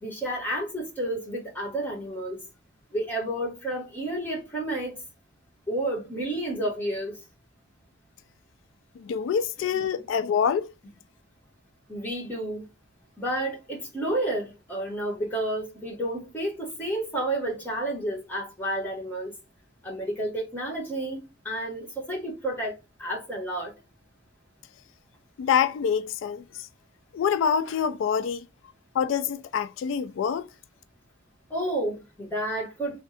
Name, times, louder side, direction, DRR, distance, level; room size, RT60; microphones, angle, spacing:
voice 1, 0.0-2.4 2.9-5.0 5.7-7.2 9.7-10.0 11.9-12.7 13.2-19.3 19.8-23.7 31.5-33.0, right 1 dB, 10° left, 1.3 m, -31 dB
voice 2, 9.0-10.7 25.4-26.7 27.1-28.4 28.9-30.5, left 7 dB, 85° left, 0.3 m, -26 dB
3.4 x 2.3 x 4.1 m
head